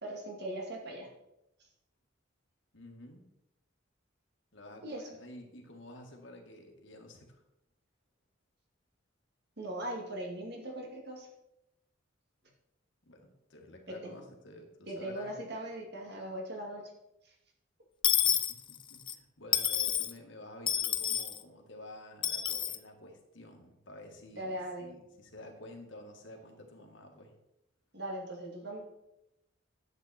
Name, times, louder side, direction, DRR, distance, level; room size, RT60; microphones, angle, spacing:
voice 1, 0.0-1.1 4.8-5.0 9.6-11.3 13.9-14.1 14.9-16.9 24.3-24.9 27.9-28.8, right 1 dB, 55° right, 0 dB, 2.4 m, -39 dB
voice 2, 2.7-3.2 4.5-7.4 13.1-15.4 18.2-27.3, left 1 dB, 70° left, 2 dB, 1.9 m, -51 dB
Dishes pots and pans / Coin (dropping), 18.0-19.1 19.5-20.1 20.7-21.4 22.2-22.8, left 9 dB, 25° left, 0.5 m, -29 dB
10.5 x 8.1 x 4.3 m, 0.88 s
head